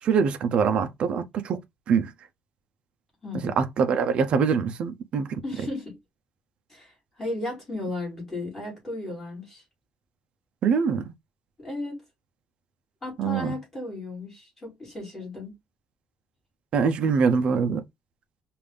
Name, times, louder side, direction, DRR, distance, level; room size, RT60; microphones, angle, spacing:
voice 1, 0.0-1.6 1.9-2.1 3.4-5.4 10.6-11.1 13.2-13.5 16.7-17.8, right 6 dB, 50° right, 0.5 m, -24 dB
voice 2, 3.2-3.6 5.4-6.0 6.7-9.6 11.6-12.0 13.0-15.5, left 2 dB, 15° left, 3.1 m, -35 dB
5.1 x 2.5 x 3.3 m
cardioid pair, 175°, 2 cm